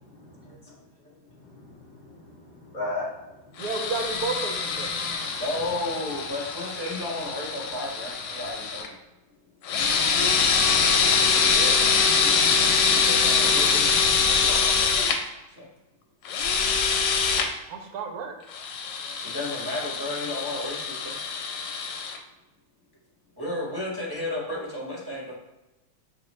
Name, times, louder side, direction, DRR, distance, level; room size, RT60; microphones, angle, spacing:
voice 1, 0.0-0.4 1.4-3.6 5.3-5.6, left 2 dB, 45° left, -6 dB, 0.5 m, -37 dB
sound 1, 3.6-8.9 9.6-15.2 16.3-17.5 18.5-22.2, left 5 dB, 75° left, 1.2 m, -24 dB
voice 2, 3.6-4.9 5.2-5.3 11.0-11.9 17.7-18.4, right 4 dB, 70° right, 4 dB, 0.9 m, -33 dB
voice 3, 5.4-8.9 12.9-15.1 15.6-15.7 19.2-21.2 23.4-25.3, left 1 dB, 20° right, -6 dB, 0.6 m, -33 dB
6.1 x 2.4 x 3.0 m, 1.0 s
omnidirectional pair, 2.1 m